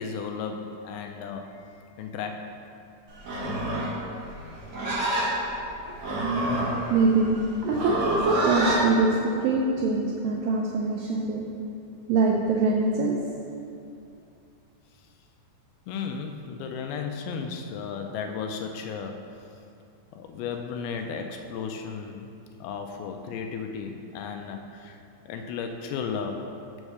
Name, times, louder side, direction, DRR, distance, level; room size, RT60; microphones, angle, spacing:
voice 1, 0.0-1.7 2.0-2.5 15.9-19.2 20.1-22.3 22.6-25.0 25.3-26.5, left 6 dB, 80° left, 4 dB, 2.3 m, -34 dB
Livestock farm animals working animals, 3.2-8.8, right 1 dB, 60° right, 1.8 m, -28 dB
voice 2, 6.9-7.4 7.6-11.5 12.1-13.2, right 3 dB, 80° right, -2 dB, 2.0 m, -23 dB
6.2 x 4.7 x 6.6 m, 2.6 s
omnidirectional pair, 4.5 m